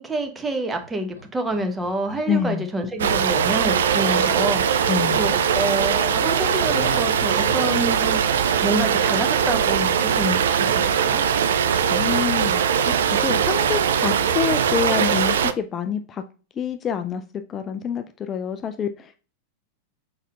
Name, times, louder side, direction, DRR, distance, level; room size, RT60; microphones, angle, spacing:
voice 1, 0.0-8.3 8.6-11.2, right 1 dB, 15° right, 6 dB, 0.8 m, -27 dB
Laughter, 0.8-5.0 6.6-9.6 9.9-10.0, left 3 dB, 80° left, 0.9 m, -40 dB
voice 2, 2.3-2.7 4.9-5.2 11.9-16.2 16.6-17.2 17.5-19.2, left 7 dB, 25° left, 8 dB, 0.3 m, -27 dB
sound 1, 3.0-15.5, right 7 dB, 60° right, 0.3 m, -21 dB
sound 2, 8.6-14.7, right 4 dB, 80° right, 2.4 m, -42 dB
5.1 x 4.1 x 2.4 m, 0.36 s
figure-of-eight pair, 90°, 0 cm